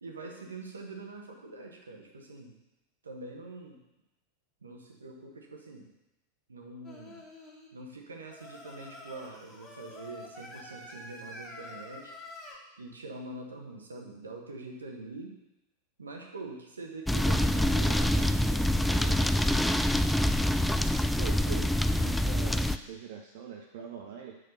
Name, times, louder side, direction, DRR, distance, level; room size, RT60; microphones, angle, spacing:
voice 1, 0.0-2.6 3.0-3.8 4.6-5.9 6.5-7.2 7.7-12.1 12.8-15.4 16.0-19.8, right 3 dB, 75° right, 2 dB, 1.3 m, -44 dB
Singing, 6.8-7.7 8.3-12.6, left 2 dB, 20° left, 1.8 m, -47 dB
sound 1, 17.1-22.8, left 1 dB, 5° left, 0.3 m, -26 dB
voice 2, 21.2-24.4, right 7 dB, 50° right, 1 dB, 0.7 m, -43 dB
6.1 x 5.0 x 6.5 m, 0.96 s
figure-of-eight pair, 90°, 0 cm